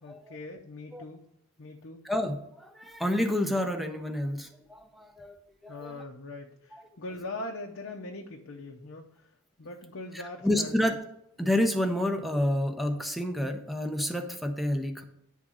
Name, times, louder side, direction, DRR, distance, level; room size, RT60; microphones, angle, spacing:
voice 1, 0.0-1.2 1.6-2.0 5.7-9.0 9.6-11.0, left 2 dB, 60° left, 0 dB, 0.7 m, -41 dB
voice 2, 2.0-5.4 5.6-6.0 6.7-6.8 10.4-11.0 11.4-15.0, left 1 dB, ahead, 5 dB, 0.7 m, -29 dB
9.8 x 3.6 x 6.2 m, 0.79 s
head